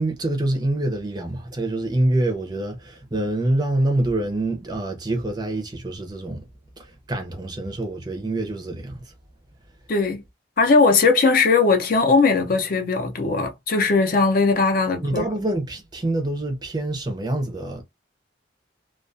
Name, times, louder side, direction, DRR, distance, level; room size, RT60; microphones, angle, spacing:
voice 1, 0.0-6.4 6.8-9.0 15.0-17.8, right 1 dB, 20° right, 0.5 m, -26 dB
voice 2, 9.9-10.2 10.6-15.2, left 4 dB, 50° left, 0.5 m, -19 dB
2.3 x 2.2 x 2.5 m
head